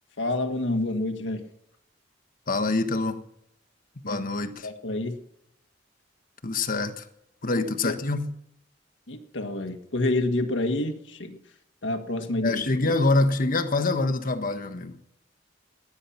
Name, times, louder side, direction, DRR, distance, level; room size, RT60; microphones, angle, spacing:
voice 1, 0.2-1.4 4.0-4.2 4.6-5.2 7.5-7.9 9.1-11.4 11.8-12.6, left 2 dB, 75° left, 6 dB, 1.7 m, -28 dB
voice 2, 2.5-3.2 4.1-4.7 6.4-7.0 7.4-8.3 12.4-14.9, left 2 dB, 50° left, 7 dB, 1.4 m, -25 dB
19.0 x 12.0 x 5.8 m, 0.78 s
head